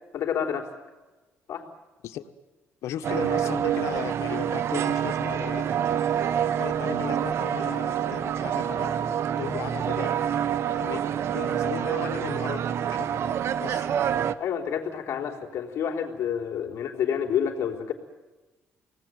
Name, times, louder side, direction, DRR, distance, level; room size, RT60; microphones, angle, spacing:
voice 1, 0.1-0.7 1.5-1.6 14.4-17.9, left 8 dB, 65° left, 2 dB, 3.9 m, -29 dB
voice 2, 2.8-5.7 6.6-9.1 9.4-10.2 10.6-11.0 11.3-12.6 12.9-13.1 13.6-13.9, left 11 dB, 85° left, 8 dB, 1.5 m, -36 dB
sound 1, 3.0-14.3, right 9 dB, 60° right, 1.0 m, -27 dB
25.5 x 19.0 x 9.4 m, 1.2 s
cardioid pair, 120°, 5 cm